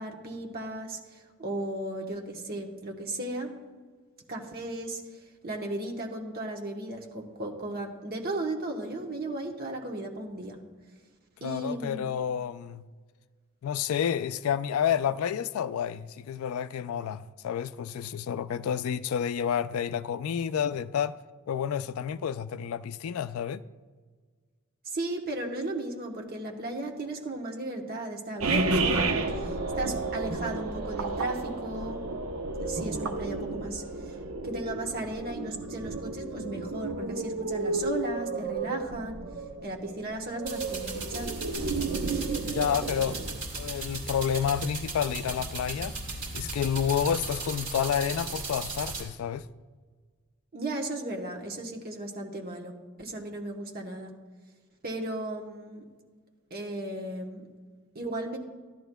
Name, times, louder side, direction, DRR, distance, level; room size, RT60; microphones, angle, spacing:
voice 1, 0.0-3.5 4.3-5.0 5.4-10.6 11.4-12.1 24.8-29.1 29.4-32.0 32.6-33.8 34.4-39.2 39.6-41.3 50.5-52.7 53.0-54.1 54.8-55.8 56.5-57.4 57.9-58.4, right 1 dB, 45° right, 1.1 m, -35 dB
voice 2, 11.4-12.9 13.6-21.1 21.5-23.6 42.5-43.2 43.6-45.9 46.3-49.5, left 8 dB, 80° left, 0.3 m, -29 dB
sound 1, 28.4-43.4, right 3 dB, 90° right, 0.8 m, -32 dB
sound 2, 40.5-49.0, right 3 dB, 60° right, 2.5 m, -37 dB
14.0 x 11.0 x 2.2 m
head